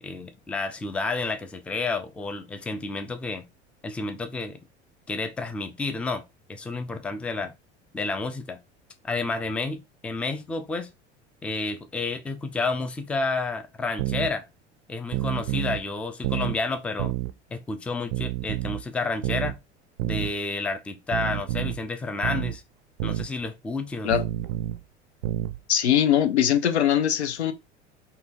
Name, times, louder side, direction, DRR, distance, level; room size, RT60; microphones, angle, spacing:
voice 1, 0.0-3.4 3.8-4.6 5.1-6.2 6.5-7.5 7.9-8.6 9.0-10.9 11.4-14.5 14.9-17.1 17.5-19.6 20.0-22.6 23.0-24.1, left 3 dB, 5° left, 0.4 m, -30 dB
sound 1, 14.0-14.3 15.1-15.8 16.2-16.6 17.0-17.3 18.1-18.8 19.2-19.6 20.0-20.3 21.1-21.8 22.2-22.6 23.0-23.3 24.1-24.8 25.2-25.6, right 14 dB, 55° right, 0.5 m, -29 dB
voice 2, 25.7-27.5, left 10 dB, 70° left, 0.7 m, -21 dB
4.1 x 2.8 x 3.6 m
figure-of-eight pair, 70°, 34 cm